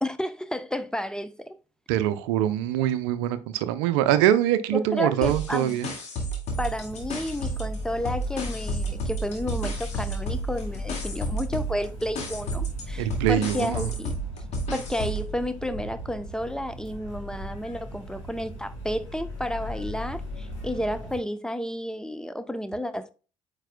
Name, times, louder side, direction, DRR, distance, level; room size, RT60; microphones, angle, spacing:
voice 1, 0.0-1.6 4.7-5.8 6.6-14.2 14.7-23.1, equal, 5° left, 0.6 m, -31 dB
voice 2, 1.9-5.9 13.0-13.9, right 11 dB, 70° right, 0.5 m, -24 dB
sound 1, 5.2-7.8 8.0-15.3, right 2 dB, 50° left, 2.0 m, -32 dB
sound 2, 6.5-21.2, left 1 dB, 70° left, 3.2 m, -37 dB
8.9 x 4.8 x 2.2 m
figure-of-eight pair, 55°, 15 cm